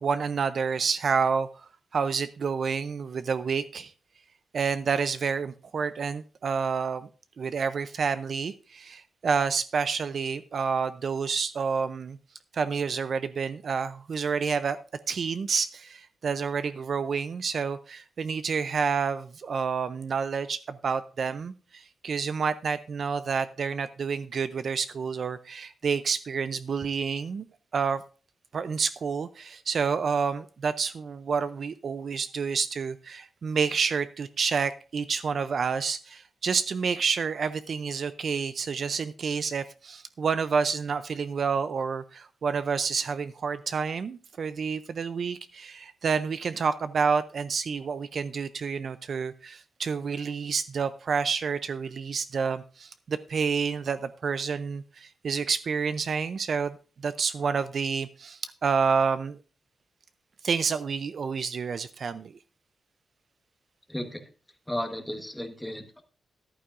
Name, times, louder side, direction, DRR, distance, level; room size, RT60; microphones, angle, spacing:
voice 1, 0.0-1.5 1.9-3.9 4.5-7.1 7.4-12.2 12.5-14.8 15.1-27.4 27.7-28.0 28.5-56.7 57.0-59.4 60.4-62.3, right 5 dB, 45° right, 13 dB, 0.4 m, -29 dB
voice 2, 63.9-64.2 64.7-66.0, left 1 dB, 5° left, 6 dB, 1.2 m, -34 dB
13.5 x 11.5 x 2.5 m, 0.36 s
wide cardioid pair, 180°, 0 cm